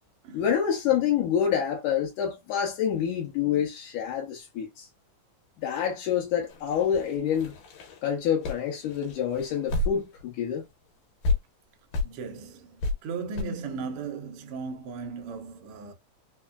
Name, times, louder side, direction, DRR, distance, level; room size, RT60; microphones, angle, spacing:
voice 1, 0.3-4.9 5.6-7.5 8.0-10.6, left 8 dB, 75° left, 2.3 m, -27 dB
sound 1, 6.5-10.3 10.6-10.7 11.2-11.4 11.9-12.1 12.8-12.9 13.4-13.5, left 2 dB, 90° left, 2.7 m, -30 dB
voice 2, 12.0-15.9, right 4 dB, 90° right, 1.2 m, -37 dB
5.4 x 2.3 x 2.3 m
omnidirectional pair, 3.8 m